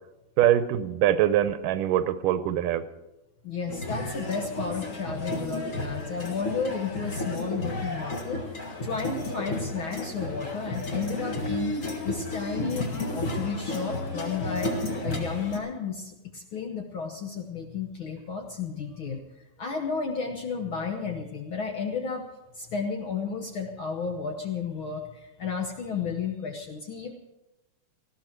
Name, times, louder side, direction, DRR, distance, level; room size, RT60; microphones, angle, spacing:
voice 1, 0.4-2.8, right 11 dB, 90° right, 12 dB, 2.4 m, -23 dB
voice 2, 3.4-19.2 19.6-22.2 22.5-27.1, left 5 dB, 60° left, 2 dB, 1.4 m, -33 dB
sound 1, 3.7-15.6, left 2 dB, 35° left, 1.5 m, -32 dB
19.0 x 14.0 x 4.5 m, 0.97 s
omnidirectional pair, 3.6 m